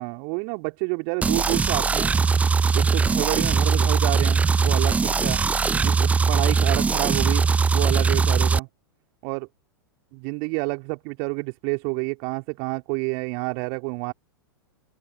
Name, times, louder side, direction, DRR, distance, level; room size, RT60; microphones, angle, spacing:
voice 1, 0.0-2.2 2.7-5.4 5.7-7.4 7.7-8.7 9.2-9.5 10.1-14.1, right 40 dB or more, 45° right, 3.2 m, -29 dB
sound 1, 1.2-8.6, right 5 dB, 10° right, 0.6 m, -21 dB
figure-of-eight pair, 95°, 12 cm